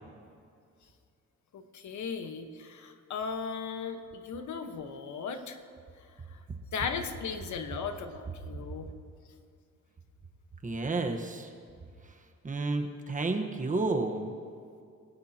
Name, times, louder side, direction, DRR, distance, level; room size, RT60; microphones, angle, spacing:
voice 1, 1.5-5.6 6.3-6.4 6.7-8.9, left 5 dB, 75° left, 6 dB, 1.4 m, -37 dB
voice 2, 10.6-11.5 12.4-14.3, right 3 dB, 25° right, 4 dB, 1.3 m, -31 dB
27.5 x 16.5 x 3.0 m, 2.4 s
cardioid pair, 135°, 29 cm